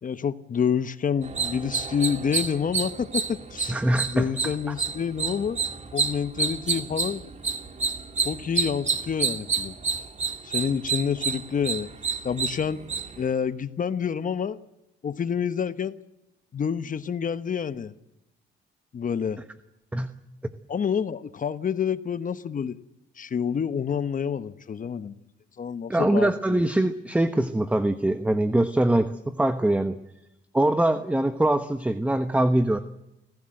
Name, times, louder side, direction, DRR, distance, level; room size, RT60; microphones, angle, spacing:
voice 1, 0.0-3.8 4.1-5.6 5.9-7.2 8.2-9.7 10.4-11.9 12.2-12.8 13.2-14.6 15.0-16.0 16.5-17.9 18.9-19.4 20.7-22.8 23.2-25.1 25.6-26.6, left 7 dB, 40° left, 1.1 m, -28 dB
sound 1, 1.2-13.3, right 5 dB, 35° right, 2.0 m, -29 dB
voice 2, 3.7-4.7 19.9-20.1 25.9-30.0 30.5-32.8, right 1 dB, 5° right, 1.1 m, -23 dB
29.0 x 15.5 x 7.8 m
cardioid pair, 90°, 20 cm